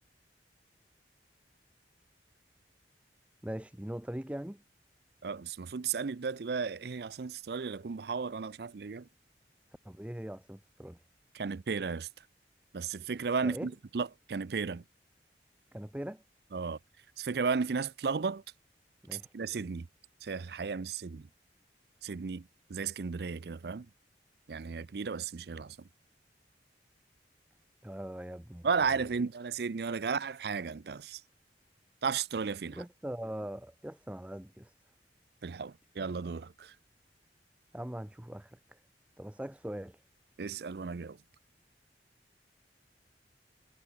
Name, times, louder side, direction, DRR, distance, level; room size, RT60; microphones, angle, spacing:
voice 1, 3.4-4.6 9.8-11.0 13.4-13.7 15.7-16.2 19.0-19.3 27.8-28.7 32.7-34.7 37.7-38.8 39.2-40.0, right 1 dB, 5° right, 0.6 m, -41 dB
voice 2, 5.2-9.1 11.3-12.1 12.7-14.8 16.5-16.8 17.2-18.4 19.1-19.9 20.2-21.3 22.0-23.9 24.5-25.8 28.6-31.2 32.0-32.8 35.4-36.7 40.4-41.2, right 5 dB, 60° right, 0.5 m, -34 dB
head